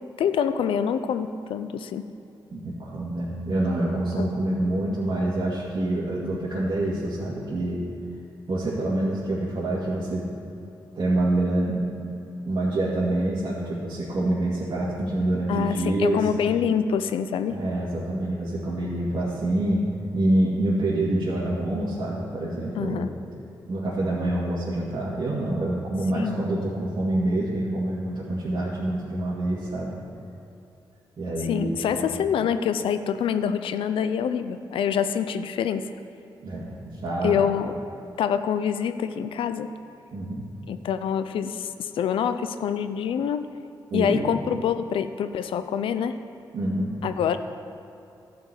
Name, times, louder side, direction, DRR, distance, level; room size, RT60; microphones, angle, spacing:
voice 1, 0.2-2.0 4.2-4.3 6.2-6.4 15.5-17.6 22.8-23.1 26.1-26.4 31.5-35.9 37.2-37.7 38.2-39.7 40.7-43.5 43.9-46.2 47.0-47.4, left 8 dB, 90° left, 11 dB, 0.5 m, -26 dB
voice 2, 2.5-7.8 8.5-10.3 10.9-11.8 12.4-16.3 17.5-23.1 23.7-30.0 31.2-32.1 36.4-37.5 40.1-40.4 43.9-44.2 46.5-47.0, right 1 dB, 55° right, -8 dB, 2.2 m, -26 dB
11.0 x 5.2 x 7.9 m, 2.7 s
cardioid pair, 65°, 9 cm